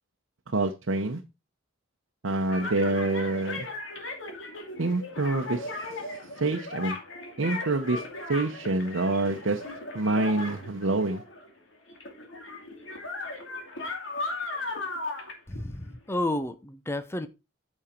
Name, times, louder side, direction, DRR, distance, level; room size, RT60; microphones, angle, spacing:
voice 1, 0.5-1.2 2.2-3.7 4.8-7.0 7.4-8.0 8.3-11.2, right 2 dB, 85° right, 0.9 m, -27 dB
sound 1, 2.4-11.6 11.9-16.2, left 2 dB, 75° left, 2.5 m, -37 dB
voice 2, 15.5-17.3, left 1 dB, 15° left, 0.7 m, -31 dB
8.9 x 6.4 x 4.4 m
head